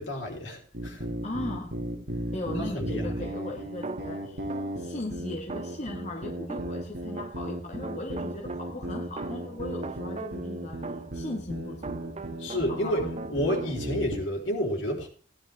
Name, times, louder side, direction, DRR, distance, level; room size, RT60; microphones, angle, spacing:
voice 1, 0.0-1.1 2.6-3.2 12.4-15.1, equal, 65° left, 3.6 m, -30 dB
sound 1, 0.7-14.3, right 1 dB, 55° right, 2.3 m, -35 dB
voice 2, 1.2-1.8 2.3-4.4 4.8-10.8 11.1-12.1 12.7-13.1, left 2 dB, 35° left, 1.2 m, -37 dB
sound 2, 3.8-5.0 5.5-12.9 13.2-13.8, right 4 dB, 35° right, 0.5 m, -41 dB
17.0 x 10.5 x 3.4 m
head